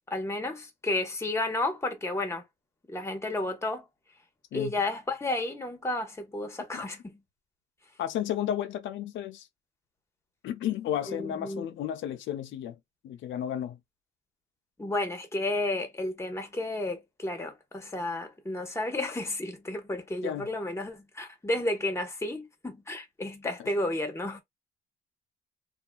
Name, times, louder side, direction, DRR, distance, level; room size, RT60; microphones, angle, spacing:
voice 1, 0.1-2.4 2.9-3.8 4.5-7.2 11.1-11.7 14.8-24.4, left 2 dB, 15° left, 1.0 m, -32 dB
voice 2, 8.0-9.5 10.4-12.8 13.0-13.8 20.2-20.5, left 10 dB, 75° left, 0.5 m, -32 dB
2.7 x 2.3 x 2.2 m
cardioid pair, 90°, 20 cm